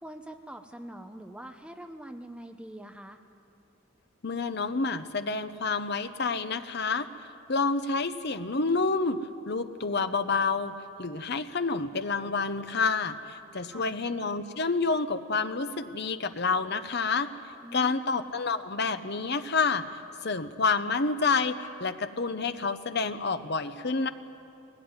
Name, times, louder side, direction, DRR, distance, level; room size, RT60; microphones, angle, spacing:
voice 1, 0.0-3.2 13.7-13.9 17.6-17.9, right 1 dB, 5° right, 6 dB, 0.7 m, -44 dB
voice 2, 4.2-7.1 7.5-9.2 9.5-17.3 17.7-19.9 20.2-24.1, left 4 dB, 50° left, 10 dB, 0.9 m, -28 dB
19.5 x 17.5 x 9.6 m, 2.6 s
head